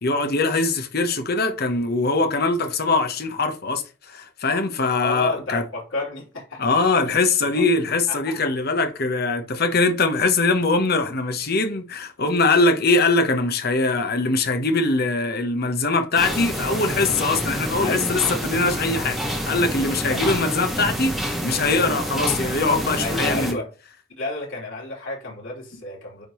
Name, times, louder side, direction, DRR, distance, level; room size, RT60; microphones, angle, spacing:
voice 1, 0.0-5.6 6.6-23.6, left 3 dB, 55° left, 1.1 m, -22 dB
voice 2, 4.9-7.0 7.5-7.6 7.9-8.3 17.8-18.2 20.0-20.2 23.0-23.7 24.2-26.2, left 2 dB, 80° left, 3.6 m, -31 dB
sound 1, 16.2-23.5, equal, ahead, 1.4 m, -27 dB
9.2 x 3.7 x 3.1 m
head